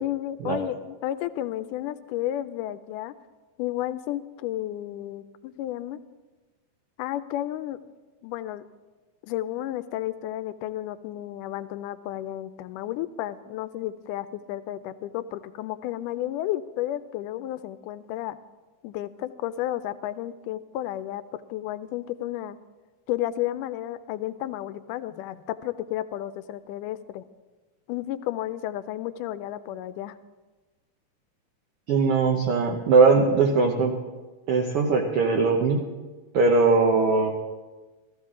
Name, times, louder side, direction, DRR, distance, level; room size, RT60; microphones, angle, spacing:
voice 1, 0.0-3.1 3.6-6.0 7.0-7.8 8.2-8.7 9.3-18.4 18.8-22.6 23.1-27.3 27.9-30.2, left 13 dB, 90° left, 13 dB, 2.1 m, -32 dB
voice 2, 31.9-33.9 34.5-35.8 36.3-37.3, right 4 dB, 65° right, 1 dB, 1.4 m, -20 dB
15.0 x 14.5 x 3.7 m, 1.2 s
omnidirectional pair, 3.6 m